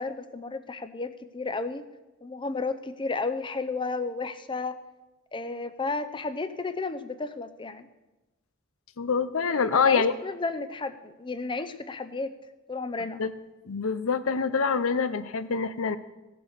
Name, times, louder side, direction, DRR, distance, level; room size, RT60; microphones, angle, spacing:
voice 1, 0.0-1.9 2.2-4.8 5.3-7.9 9.7-12.3 12.7-13.2, left 3 dB, 25° left, 10 dB, 0.6 m, -32 dB
voice 2, 9.0-10.1 13.2-13.3 13.7-16.0, left 5 dB, 90° left, 13 dB, 0.7 m, -25 dB
16.5 x 6.9 x 6.6 m, 1.1 s
head